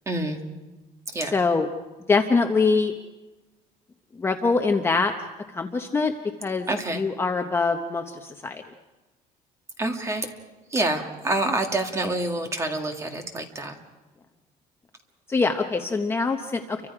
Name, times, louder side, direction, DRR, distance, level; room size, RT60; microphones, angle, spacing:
voice 1, 0.1-0.4 1.1-1.3 6.7-7.0 9.8-10.3 10.7-13.8, right 2 dB, 20° right, 4 dB, 1.9 m, -27 dB
voice 2, 1.2-1.7 2.1-2.9 4.2-5.1 5.5-6.1 6.4-6.7 6.9-8.6 15.3-16.8, left 4 dB, 15° left, 4 dB, 0.8 m, -23 dB
29.5 x 24.5 x 4.9 m, 1.1 s
cardioid pair, 170°, 16 cm